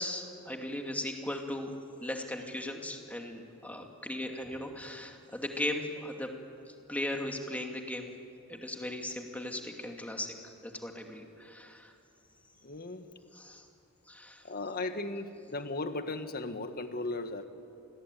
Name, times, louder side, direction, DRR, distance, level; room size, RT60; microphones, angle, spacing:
voice 1, 0.0-1.7 2.0-6.3 6.7-8.1 8.5-10.3 10.6-11.9 13.3-13.6 14.1-14.4, left 1 dB, 5° left, 2 dB, 2.5 m, -37 dB
voice 2, 12.6-13.0 14.4-17.5, left 2 dB, 45° left, 8 dB, 1.7 m, -36 dB
28.5 x 21.0 x 9.3 m, 2.5 s
head